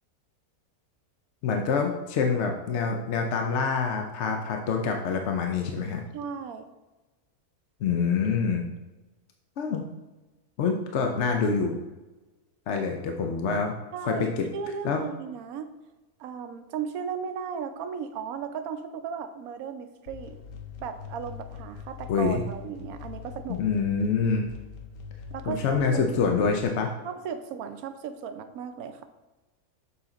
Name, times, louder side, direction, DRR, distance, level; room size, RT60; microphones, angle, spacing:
voice 1, 1.4-6.0 7.8-8.7 9.6-9.8 10.6-11.8 12.7-13.7 14.0-14.4 14.8-15.0 22.1-22.4 23.5-24.5 25.5-26.9, left 5 dB, 60° left, 3 dB, 0.8 m, -26 dB
voice 2, 6.1-6.7 13.9-15.7 16.2-20.4 20.8-23.6 25.3-26.0 27.0-29.1, right 7 dB, 75° right, 9 dB, 1.0 m, -36 dB
sound 1, 20.1-26.6, left 7 dB, 75° left, 1.2 m, -43 dB
7.0 x 4.2 x 3.8 m, 1.1 s
omnidirectional pair, 1.5 m